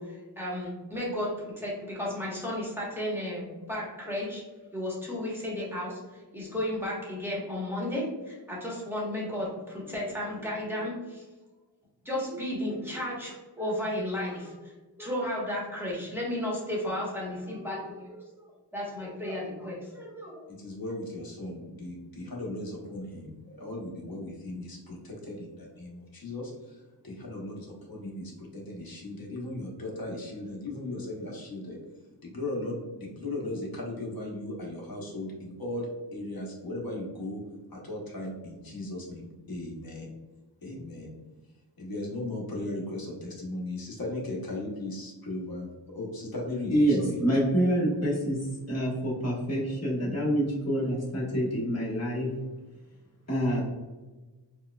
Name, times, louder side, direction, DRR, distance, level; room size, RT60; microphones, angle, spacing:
voice 1, 0.0-4.4 4.7-11.2 12.0-14.7 15.0-18.2 18.7-20.4, left 1 dB, 5° right, -5 dB, 1.1 m, -33 dB
voice 2, 20.5-31.8 32.2-37.4 37.7-40.1 40.6-41.1 41.8-47.2, left 1 dB, 55° left, -2 dB, 1.0 m, -37 dB
voice 3, 46.7-48.4 48.7-52.3 53.3-53.6, equal, 35° left, -6 dB, 1.3 m, -26 dB
4.5 x 2.3 x 2.3 m, 1.2 s
wide cardioid pair, 90°, 43 cm